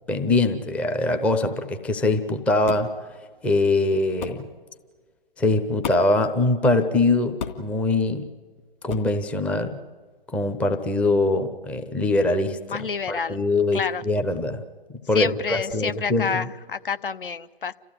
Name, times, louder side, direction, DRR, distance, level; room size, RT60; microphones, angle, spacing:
voice 1, 0.1-2.9 3.4-4.5 5.4-8.3 8.8-9.8 10.3-12.8 13.1-14.6 15.1-16.4, left 2 dB, 5° left, 8 dB, 0.6 m, -23 dB
sound 1, 2.7-2.9 4.2-4.4 5.8-6.2 7.4-7.7 8.9-9.1, left 6 dB, 50° left, 2.8 m, -32 dB
voice 2, 12.7-13.4 13.7-14.0 15.1-17.7, left 6 dB, 65° left, 12 dB, 0.9 m, -28 dB
29.5 x 14.5 x 9.9 m, 1.5 s
figure-of-eight pair, 130°, 29 cm